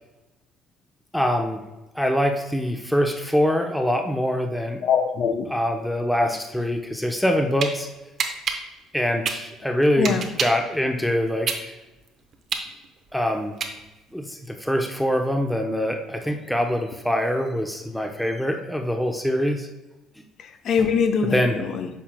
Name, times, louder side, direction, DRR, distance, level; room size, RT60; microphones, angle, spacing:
voice 1, 1.1-1.6 1.9-4.8 5.5-7.9 8.9-11.8 13.1-13.5 14.1-19.7 21.3-21.6, equal, 5° left, 4 dB, 0.8 m, -24 dB
voice 2, 4.8-5.5 6.2-6.3 10.0-10.3 20.4-21.9, left 6 dB, 55° left, 7 dB, 0.7 m, -23 dB
sound 1, 7.2-7.7 8.2-10.7 11.1-14.1, right 6 dB, 50° right, 0.8 m, -28 dB
8.4 x 5.7 x 2.2 m, 1.0 s
hypercardioid pair, 55°, 0 cm